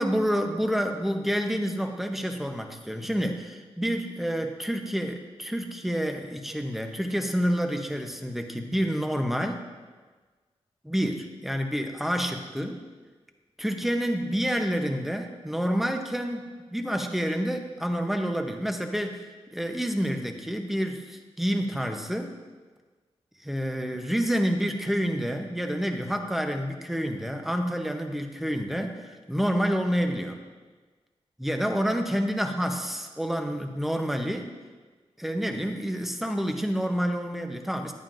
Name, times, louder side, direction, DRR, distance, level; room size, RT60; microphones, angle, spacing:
voice 1, 0.0-9.6 10.8-12.8 13.6-19.2 19.5-22.4 23.4-30.4 31.4-34.5 35.2-37.9, equal, ahead, 4 dB, 0.8 m, -28 dB
14.5 x 11.0 x 2.6 m, 1.4 s
wide cardioid pair, 145°, 11 cm